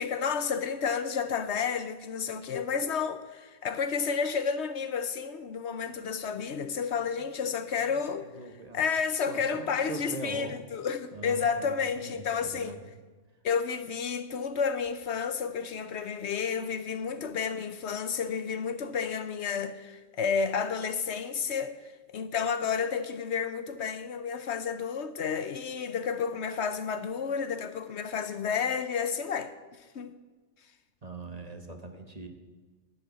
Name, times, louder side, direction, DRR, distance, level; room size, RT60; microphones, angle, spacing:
voice 1, 0.0-8.3 8.7-12.8 13.4-30.1, left 6 dB, 65° left, 0.9 m, -31 dB
voice 2, 6.7-8.8 9.1-10.6 11.1-12.8 17.1-17.5 17.9-18.1 31.0-32.3, right 2 dB, 35° right, 1.1 m, -43 dB
12.0 x 6.6 x 9.1 m
omnidirectional pair, 1.3 m